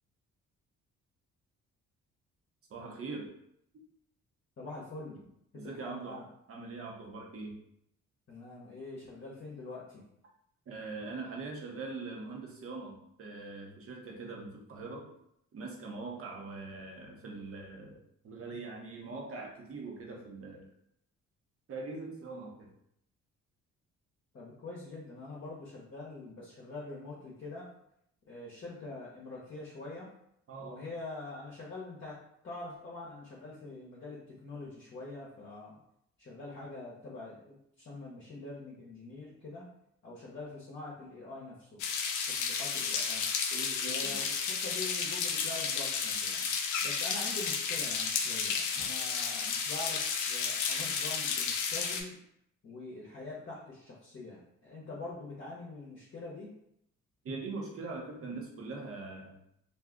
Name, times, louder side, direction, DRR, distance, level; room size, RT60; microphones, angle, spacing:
voice 1, 2.7-3.3 5.5-6.2 6.5-7.6 10.7-15.1 15.5-20.7 21.7-22.7 30.5-30.8 43.5-44.2 57.2-59.4, right 3 dB, 50° right, 0 dB, 0.8 m, -42 dB
voice 2, 4.6-5.2 5.5-6.2 8.3-10.0 24.3-27.7 28.3-30.1 30.6-32.2 32.4-35.8 36.2-39.7 40.0-41.8 42.3-43.3 43.8-46.5 46.8-52.2 52.6-56.5, left 2 dB, 40° left, -5 dB, 0.8 m, -44 dB
sound 1, 41.8-52.0, left 6 dB, 80° left, 0.5 m, -32 dB
2.5 x 2.3 x 3.6 m, 0.74 s
cardioid pair, 90°, 30 cm